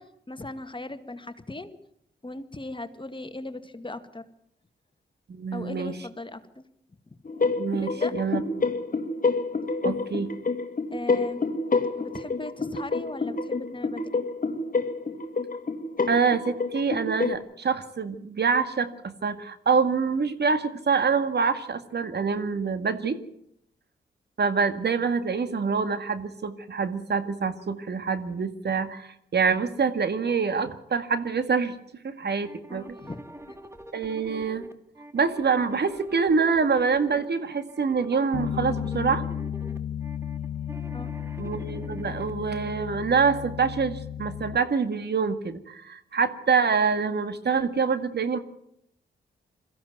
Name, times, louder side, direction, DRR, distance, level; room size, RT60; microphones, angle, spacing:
voice 1, 0.0-1.8 2.2-4.3 5.5-6.6 7.1-7.2 7.8-8.1 10.9-11.4 12.0-14.2 28.6-28.7 32.7-33.6 40.9-41.1, left 2 dB, 25° left, 10 dB, 1.9 m, -38 dB
voice 2, 5.3-5.9 7.6-8.6 9.8-10.3 16.1-23.2 24.4-31.8 32.0-33.0 33.9-34.7 35.1-39.2 41.4-48.4, right 5 dB, 55° right, 10 dB, 2.0 m, -26 dB
sound 1, 7.3-17.4, left 4 dB, 45° left, 1.9 m, -28 dB
sound 2, 32.4-42.3, right 1 dB, 15° right, 2.2 m, -44 dB
Bass guitar, 38.3-44.6, left 9 dB, 70° left, 1.0 m, -33 dB
21.5 x 15.5 x 9.4 m, 0.74 s
supercardioid pair, 50°, 20 cm